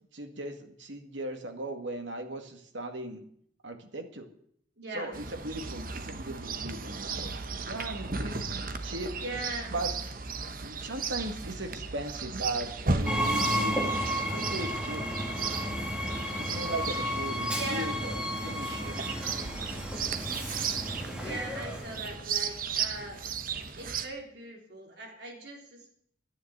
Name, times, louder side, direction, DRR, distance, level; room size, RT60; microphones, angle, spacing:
voice 1, 0.1-3.2 3.6-4.3 4.9-9.2 9.7-9.9 10.6-13.9 14.2-15.0 16.4-18.9, right 2 dB, 80° right, 5 dB, 2.0 m, -38 dB
voice 2, 4.8-5.1 9.2-9.8 17.6-17.9 21.2-23.2 23.7-25.9, right 2 dB, 65° right, 1 dB, 3.8 m, -40 dB
Chirp tweet, 5.1-24.1, right 5 dB, 45° right, 1.1 m, -36 dB
Train, 13.1-22.2, equal, 5° right, 2.4 m, -32 dB
12.0 x 10.0 x 8.1 m, 0.66 s
head